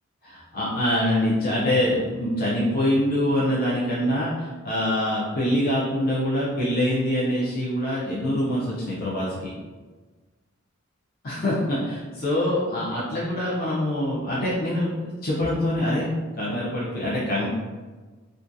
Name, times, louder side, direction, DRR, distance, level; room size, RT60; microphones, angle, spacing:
voice 1, 0.2-9.5 11.2-16.1 16.4-17.5, left 1 dB, 50° left, -8 dB, 0.5 m, -24 dB
2.4 x 2.3 x 2.6 m, 1.3 s
head